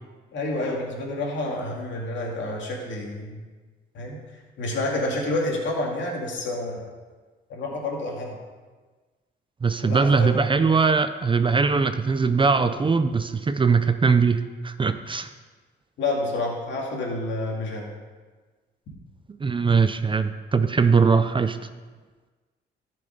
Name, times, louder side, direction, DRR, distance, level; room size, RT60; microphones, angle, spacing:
voice 1, 0.3-3.5 3.9-4.2 4.6-6.8 7.5-8.4 9.8-10.4 16.0-17.9, left 2 dB, 70° left, -2 dB, 2.5 m, -29 dB
voice 2, 9.6-15.3 19.4-21.6, right 5 dB, 25° right, 10 dB, 0.6 m, -21 dB
13.5 x 6.0 x 5.2 m, 1.4 s
cardioid pair, 90°, 20 cm